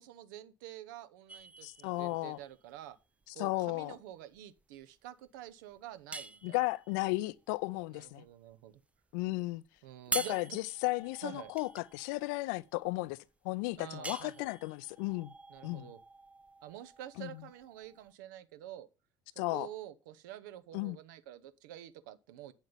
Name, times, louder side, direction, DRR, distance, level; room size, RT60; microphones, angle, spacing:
voice 1, 0.0-3.0 3.3-6.6 7.9-8.8 9.8-10.6 11.2-11.5 13.8-14.5 15.5-16.0 16.6-18.9 19.3-22.5, right 12 dB, 65° right, 0.8 m, -48 dB
sound 1, 1.3-18.1, right 3 dB, 10° right, 0.5 m, -46 dB
voice 2, 1.6-2.4 3.4-3.9 6.4-8.2 9.1-9.6 10.1-13.2 13.4-15.3 15.6-15.9 17.2-17.3 19.4-19.7 20.7-21.0, left 22 dB, 60° left, 0.5 m, -34 dB
9.0 x 7.5 x 5.3 m
figure-of-eight pair, 65°, 11 cm